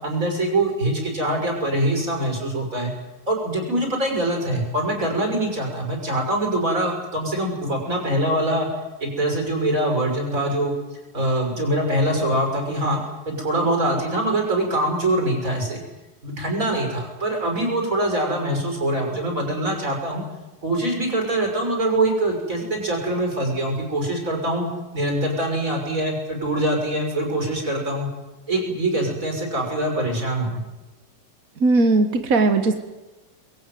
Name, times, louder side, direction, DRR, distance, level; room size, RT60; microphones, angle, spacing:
voice 1, 0.0-2.9 3.3-8.7 9.0-10.7 11.1-15.8 16.2-20.2 20.6-24.7 24.9-28.1 28.5-30.6, right 1 dB, 20° right, 2 dB, 6.3 m, -23 dB
voice 2, 31.6-32.7, right 3 dB, 55° right, 8 dB, 0.9 m, -18 dB
23.5 x 22.0 x 9.4 m, 1.1 s
omnidirectional pair, 3.9 m